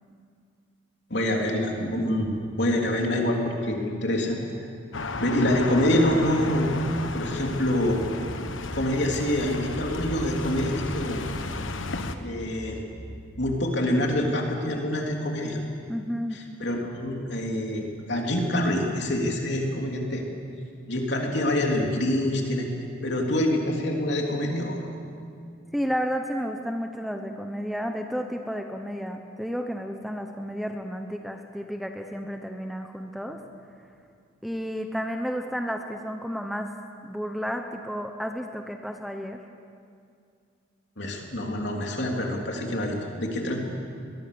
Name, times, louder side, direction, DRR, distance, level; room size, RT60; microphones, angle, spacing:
voice 1, 1.1-4.4 5.2-6.8 7.1-8.0 8.7-11.2 12.2-12.8 13.4-15.6 16.3-20.2 20.9-22.7 23.0-24.8 41.0-43.6, left 1 dB, 60° left, 0 dB, 3.5 m, -26 dB
sound 1, 4.9-12.2, left 3 dB, 80° left, 1.3 m, -33 dB
sound 2, 7.6-13.4, equal, 15° right, 3.4 m, -44 dB
voice 2, 15.9-16.4 25.7-33.4 34.4-36.7 37.0-39.4, equal, ahead, 4 dB, 0.9 m, -32 dB
23.0 x 21.0 x 7.0 m, 2.3 s
head